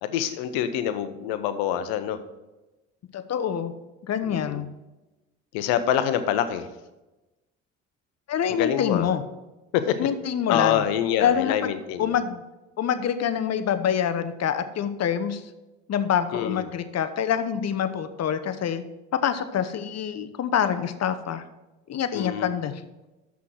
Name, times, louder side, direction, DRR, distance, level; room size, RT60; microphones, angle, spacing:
voice 1, 0.0-2.2 4.3-4.6 5.5-6.6 8.5-9.1 9.7-10.0 10.5-12.2 16.3-16.7 22.1-22.5, left 10 dB, 75° left, 10 dB, 0.9 m, -26 dB
voice 2, 3.1-3.7 4.1-4.7 8.3-9.2 10.0-10.8 11.2-11.7 12.0-12.4 12.8-15.4 15.9-18.8 19.2-21.4 21.9-22.8, left 8 dB, 45° left, 10 dB, 0.9 m, -26 dB
7.2 x 6.0 x 6.2 m, 1.1 s
hypercardioid pair, 65°, 37 cm